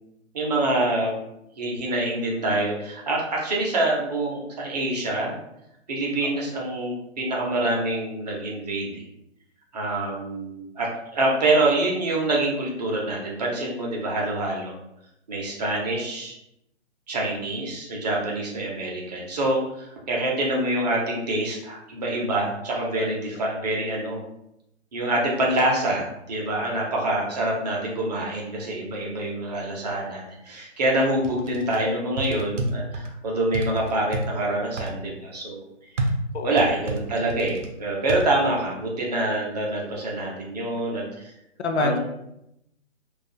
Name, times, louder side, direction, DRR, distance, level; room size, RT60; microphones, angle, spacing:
voice 1, 0.3-1.1 1.6-5.4 5.9-9.0 9.7-14.8 15.3-16.3 17.1-24.2 24.9-35.6 36.4-41.3 41.8-42.0, right 2 dB, 35° right, -3 dB, 0.6 m, -26 dB
sound 1, 31.2-31.8 32.2-33.1 33.5-34.3 34.8-34.9 36.0-37.7 38.1-38.2, right 2 dB, 90° right, 0.7 m, -29 dB
voice 2, 41.6-42.0, left 3 dB, 65° left, 5 dB, 0.5 m, -26 dB
2.3 x 2.3 x 2.7 m, 0.82 s
hypercardioid pair, 150°, 36 cm